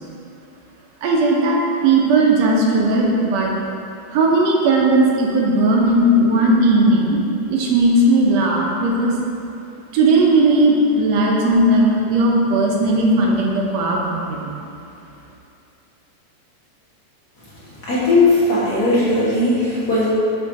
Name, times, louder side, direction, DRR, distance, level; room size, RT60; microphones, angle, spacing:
voice 1, 1.0-3.5 4.1-7.2 7.5-9.1 9.9-14.5, right 2 dB, 70° right, -2 dB, 1.8 m, -16 dB
voice 2, 17.8-20.1, left 2 dB, 45° left, -10 dB, 1.4 m, -17 dB
6.6 x 4.4 x 4.8 m, 2.5 s
omnidirectional pair, 3.4 m